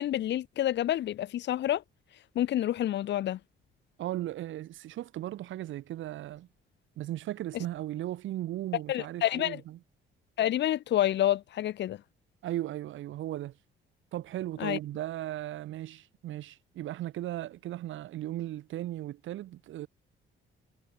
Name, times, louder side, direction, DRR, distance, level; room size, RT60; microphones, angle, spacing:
voice 1, 0.0-1.8 2.3-3.4 7.5-7.6 8.9-9.6 10.4-12.0 14.6-14.8, left 12 dB, 65° left, 0.7 m, -28 dB
voice 2, 4.0-6.5 7.0-9.8 12.4-13.6 14.1-19.9, right 14 dB, 75° right, 1.1 m, -36 dB
cardioid pair, 90°, 20 cm